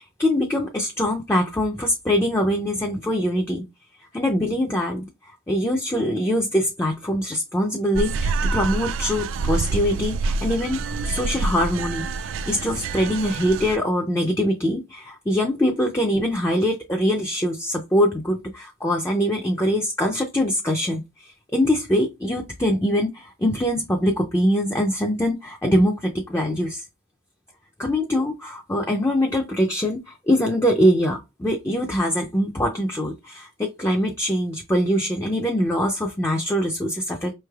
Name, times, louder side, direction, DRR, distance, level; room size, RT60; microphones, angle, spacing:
voice 1, 0.0-3.6 4.1-26.9 27.8-37.3, equal, 10° left, 1 dB, 0.4 m, -23 dB
sound 1, 7.9-13.8, right 3 dB, 80° right, 0.3 m, -27 dB
5.2 x 3.2 x 2.3 m, 0.24 s
head